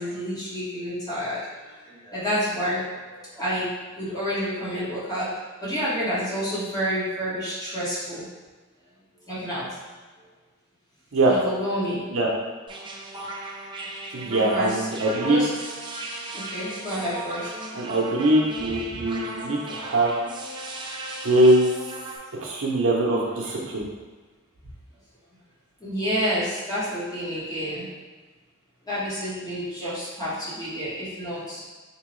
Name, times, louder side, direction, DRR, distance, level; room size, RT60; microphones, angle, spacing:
voice 1, 0.0-1.4 2.1-2.8 3.4-3.7 4.0-5.3 5.6-8.2 9.3-9.7 11.3-12.0 14.2-14.9 15.2-15.5 16.3-17.5 25.8-27.9 28.9-31.6, equal, 20° left, -10 dB, 1.5 m, -29 dB
sound 1, 12.7-22.2, right 2 dB, 25° right, 0.4 m, -36 dB
voice 2, 14.1-15.5 17.7-20.1 21.2-21.7 22.4-23.8, right 1 dB, 70° right, -2 dB, 0.7 m, -22 dB
3.7 x 3.0 x 3.1 m, 1.3 s
head